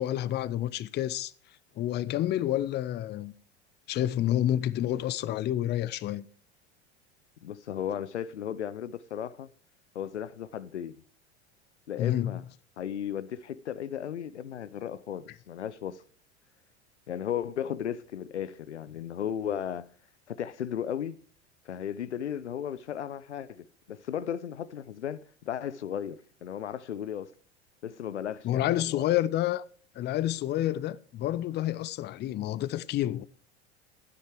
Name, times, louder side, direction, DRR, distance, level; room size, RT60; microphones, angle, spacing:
voice 1, 0.0-1.3 1.8-3.3 3.9-6.3 12.0-12.3 28.4-29.6 30.0-33.2, left 13 dB, 30° left, 0.5 m, -29 dB
voice 2, 7.4-9.5 9.9-11.0 11.9-12.4 12.8-16.0 17.1-19.9 20.3-21.2 21.7-27.3 27.8-29.0, left 9 dB, 90° left, 0.5 m, -35 dB
12.5 x 9.5 x 4.6 m
hypercardioid pair, 80°, 34 cm